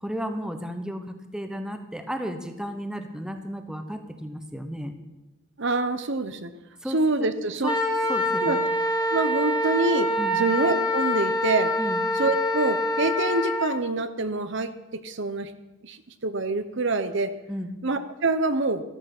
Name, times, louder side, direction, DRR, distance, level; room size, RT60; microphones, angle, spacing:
voice 1, 0.0-4.9 6.8-7.0 7.6-7.7 8.1-8.6 10.2-10.4 11.8-12.0 17.5-17.7, equal, 5° right, 6 dB, 1.0 m, -33 dB
voice 2, 5.6-6.5 6.8-7.7 8.4-8.6 9.1-10.1 10.4-11.7 12.1-14.7 15.0-15.5 15.8-17.3 17.8-18.8, right 2 dB, 55° right, 10 dB, 0.8 m, -26 dB
Wind instrument woodwind instrument, 7.6-13.7, left 1 dB, 20° left, 1.4 m, -25 dB
13.5 x 13.0 x 6.0 m, 1.0 s
head